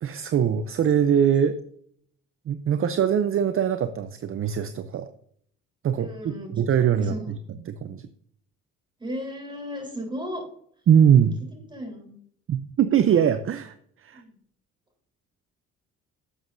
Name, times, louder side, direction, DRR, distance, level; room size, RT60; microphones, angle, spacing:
voice 1, 0.0-1.6 2.5-5.1 5.8-7.1 7.7-8.1 10.9-11.4 12.5-13.7 14.0-14.2, right 8 dB, 45° right, 11 dB, 0.5 m, -22 dB
voice 2, 5.9-6.5 6.9-7.3 9.0-10.4 11.5-12.2 14.1-14.4, equal, 15° right, 2 dB, 3.7 m, -35 dB
11.0 x 7.3 x 2.6 m, 0.65 s
cardioid pair, 90°, 30 cm